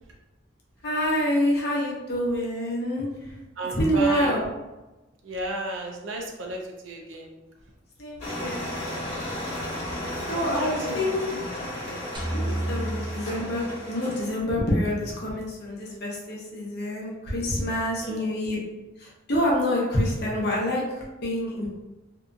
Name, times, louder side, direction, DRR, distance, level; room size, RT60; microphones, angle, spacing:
voice 1, 0.8-3.1 3.8-4.4 8.0-8.7 10.3-11.2 12.3-18.6 19.0-21.7, equal, 55° left, -3 dB, 0.8 m, -27 dB
voice 2, 3.6-4.4 5.2-7.3 10.3-11.1 11.9-12.0 17.9-18.3, right 1 dB, 75° right, 1 dB, 0.5 m, -33 dB
sound 1, 8.2-14.4, left 1 dB, 35° left, 1.1 m, -34 dB
sound 2, 12.1-14.4, right 1 dB, 25° right, 0.5 m, -31 dB
2.7 x 2.4 x 2.4 m, 1.1 s
head